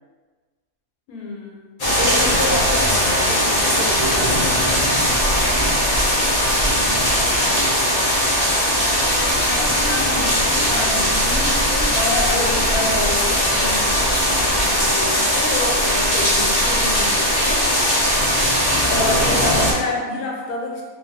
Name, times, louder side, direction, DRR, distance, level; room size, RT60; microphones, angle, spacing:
voice 1, 1.1-1.7 9.4-17.6 18.9-20.8, left 2 dB, 90° left, -2 dB, 1.1 m, -28 dB
sound 1, 1.8-19.7, equal, 55° left, 0.4 m, -19 dB
voice 2, 1.9-5.1, equal, 30° right, -12 dB, 0.8 m, -29 dB
2.5 x 2.3 x 2.6 m, 1.4 s
omnidirectional pair, 1.5 m